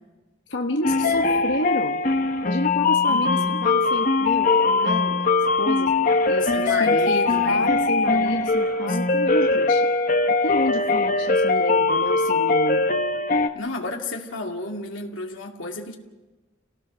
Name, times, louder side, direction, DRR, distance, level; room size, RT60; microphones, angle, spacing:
voice 1, 0.5-2.0 2.4-5.9 6.3-9.9 10.3-12.9, left 2 dB, 65° left, 2 dB, 1.3 m, -29 dB
sound 1, 0.8-13.5, left 3 dB, 45° left, 1.2 m, -21 dB
voice 2, 3.1-3.6 6.5-7.7 8.9-9.0 13.5-16.0, left 2 dB, 85° left, 1 dB, 2.4 m, -32 dB
29.0 x 18.0 x 6.3 m, 1.2 s
head